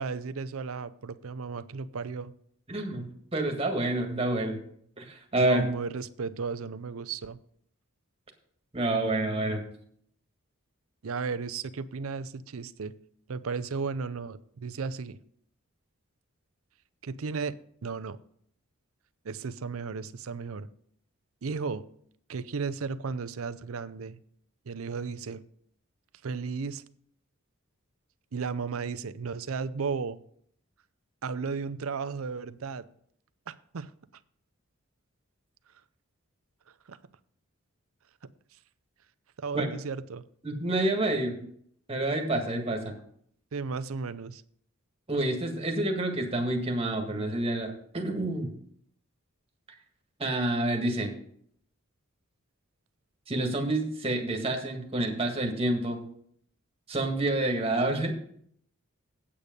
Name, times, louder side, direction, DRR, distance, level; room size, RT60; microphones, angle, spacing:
voice 1, 0.0-2.3 5.4-7.4 11.0-12.9 13.3-15.2 17.0-17.6 17.8-18.2 19.2-20.7 21.4-21.8 22.3-24.2 24.7-25.4 26.2-26.8 28.3-30.2 31.2-32.9 33.5-33.9 36.9-37.0 39.4-40.2 43.5-44.4, right 5 dB, 70° right, 14 dB, 0.6 m, -34 dB
voice 2, 2.7-4.6 5.0-5.7 8.7-9.6 39.5-39.7 40.4-41.4 41.9-43.0 45.1-48.5 50.2-51.1 53.3-56.0 56.9-58.1, right 2 dB, 25° right, 3 dB, 1.7 m, -28 dB
8.6 x 8.4 x 5.2 m, 0.64 s
head